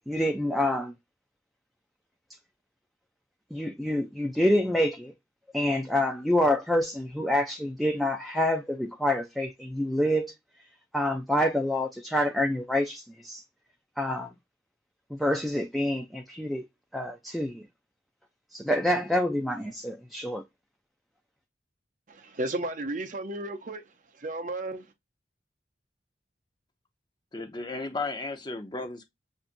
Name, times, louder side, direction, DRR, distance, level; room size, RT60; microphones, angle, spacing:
voice 1, 0.1-0.9 3.5-5.1 5.5-10.3 10.9-13.4 14.0-14.3 15.1-16.6 16.9-17.6 18.5-20.4, left 1 dB, ahead, 0.4 m, -27 dB
voice 2, 22.1-23.8 24.1-24.9, right 2 dB, 40° right, 0.6 m, -33 dB
voice 3, 27.3-29.1, left 3 dB, 25° left, 0.8 m, -34 dB
7.2 x 2.6 x 2.5 m
head